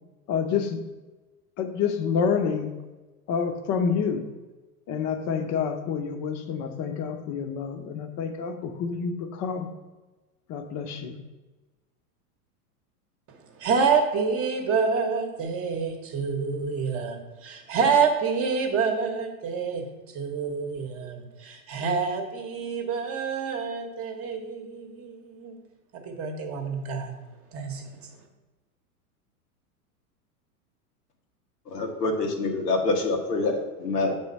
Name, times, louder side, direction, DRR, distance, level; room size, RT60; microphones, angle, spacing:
voice 1, 0.3-0.8 1.6-2.8 3.3-4.2 4.9-9.7 10.5-11.2, left 6 dB, 35° left, 6 dB, 0.8 m, -28 dB
voice 2, 13.3-25.6 25.9-27.1 27.5-28.1, right 5 dB, 30° right, 4 dB, 1.0 m, -27 dB
voice 3, 31.7-34.1, left 3 dB, 90° left, 2 dB, 1.4 m, -26 dB
6.5 x 3.5 x 5.3 m, 1.2 s
hypercardioid pair, 115°, 46 cm